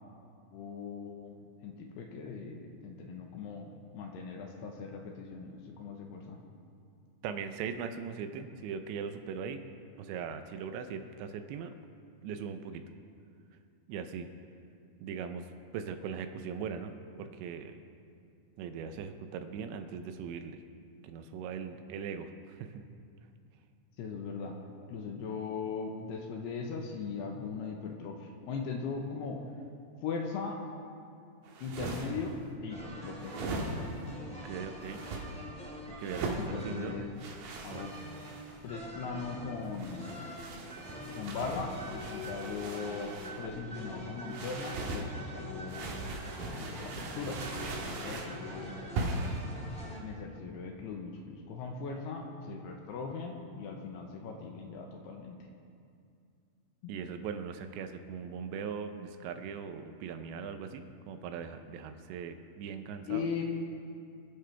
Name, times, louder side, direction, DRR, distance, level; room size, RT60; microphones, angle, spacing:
voice 1, 0.5-1.3 1.6-6.4 24.0-24.6 24.9-29.4 30.0-30.6 31.6-32.3 32.6-33.7 36.4-37.1 37.6-37.9 38.6-40.1 41.2-45.9 46.5-47.5 47.8-48.8 50.0-55.4 63.1-63.4, left 5 dB, 75° left, 2 dB, 2.8 m, -39 dB
voice 2, 7.2-9.6 10.0-11.7 12.2-12.8 13.9-14.3 15.0-15.5 15.7-17.8 18.6-20.6 21.0-22.8 34.3-35.0 36.0-37.0 37.7-37.9 56.9-63.2, right 6 dB, 80° right, 8 dB, 2.9 m, -40 dB
sound 1, 31.4-32.3 33.2-34.1 34.8-35.2 36.0-36.5 37.2-38.6 39.6-43.4 44.3-45.1 45.7-48.3 49.0-49.4, right 2 dB, 60° right, 2.9 m, -39 dB
sound 2, 32.7-50.0, equal, 10° left, 0.4 m, -45 dB
27.0 x 10.0 x 3.4 m, 2.4 s
omnidirectional pair, 5.2 m